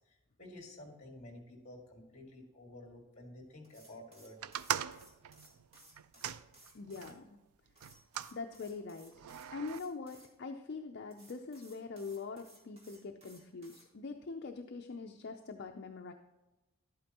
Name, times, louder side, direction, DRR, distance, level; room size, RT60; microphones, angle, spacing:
voice 1, 0.1-4.6, left 1 dB, 30° left, 1 dB, 2.0 m, -52 dB
sound 1, 3.6-7.1 7.7-10.3 11.1-13.9, right 1 dB, 30° right, 1.8 m, -60 dB
sound 2, 4.4-7.2 7.8-8.4 9.1-9.8, right 9 dB, 85° right, 0.4 m, -40 dB
voice 2, 6.7-7.4 8.3-9.1 9.5-16.1, left 4 dB, 50° left, 4 dB, 0.5 m, -43 dB
11.5 x 8.6 x 2.9 m, 1.1 s
head